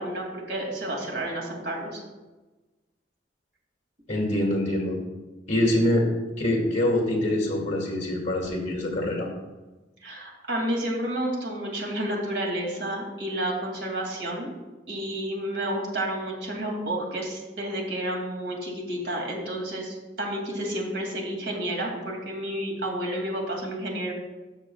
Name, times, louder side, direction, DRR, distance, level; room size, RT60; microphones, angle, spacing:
voice 1, 0.0-2.0 10.0-14.5 14.9-24.1, right 1 dB, 65° right, -1 dB, 2.4 m, -30 dB
voice 2, 4.1-5.0 5.5-6.1 6.4-9.3, left 1 dB, 40° left, 0 dB, 2.2 m, -24 dB
13.0 x 6.7 x 2.3 m, 1.2 s
head